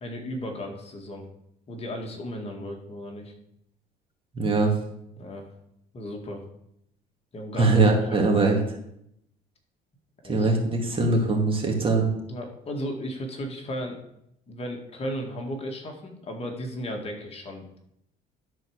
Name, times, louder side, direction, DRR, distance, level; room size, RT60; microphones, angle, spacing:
voice 1, 0.0-1.3 1.7-3.3 5.2-5.5 5.9-6.4 7.3-7.7 8.1-8.2 10.2-10.5 12.3-14.0 14.5-17.8, equal, 35° left, 2 dB, 1.9 m, -35 dB
voice 2, 4.3-4.7 7.5-8.6 10.3-12.1, right 3 dB, 30° right, 1 dB, 2.4 m, -21 dB
12.0 x 4.6 x 6.5 m, 0.78 s
cardioid pair, 110°, 17 cm